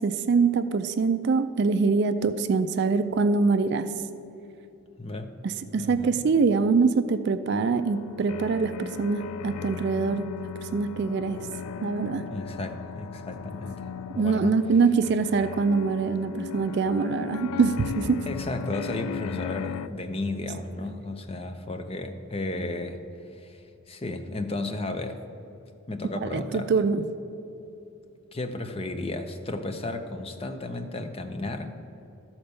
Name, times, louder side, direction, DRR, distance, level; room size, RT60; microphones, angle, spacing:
voice 1, 0.0-3.9 5.4-10.3 10.6-11.4 11.8-12.2 14.1-18.2 26.2-27.0, right 4 dB, 50° right, 11 dB, 0.3 m, -24 dB
voice 2, 5.0-5.4 5.8-6.2 12.3-13.8 14.1-14.6 18.3-23.0 23.3-23.6 23.9-25.2 25.9-26.9 28.3-31.8, left 2 dB, 25° left, 6 dB, 0.5 m, -33 dB
sound 1, 7.6-19.9, left 8 dB, 85° left, 0.3 m, -37 dB
13.0 x 4.3 x 6.7 m, 2.9 s
head